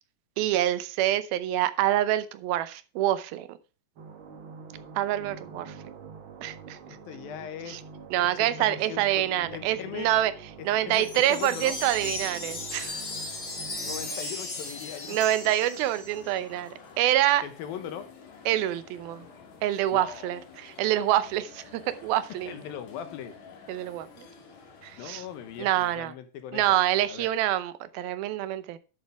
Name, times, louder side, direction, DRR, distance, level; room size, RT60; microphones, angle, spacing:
voice 1, 0.4-3.6 5.0-5.8 6.4-6.8 7.7-7.8 8.1-10.3 10.6-13.0 15.1-17.4 18.5-19.3 19.6-22.6 23.7-24.3 24.8-25.2 25.6-26.1 26.5-28.8, right 13 dB, 90° right, 2.7 m, -26 dB
sound 1, 4.0-14.2, right 5 dB, 60° right, 1.4 m, -45 dB
voice 2, 6.9-7.8 8.4-9.0 9.5-10.1 10.6-11.8 13.8-15.3 17.4-18.1 19.9-20.4 22.5-23.3 25.0-27.3, left 9 dB, 80° left, 3.0 m, -40 dB
Wind chime, 10.9-16.3, left 3 dB, 30° left, 1.2 m, -37 dB
sound 2, 12.7-26.0, left 5 dB, 55° left, 2.9 m, -50 dB
11.0 x 7.4 x 3.5 m
omnidirectional pair, 4.2 m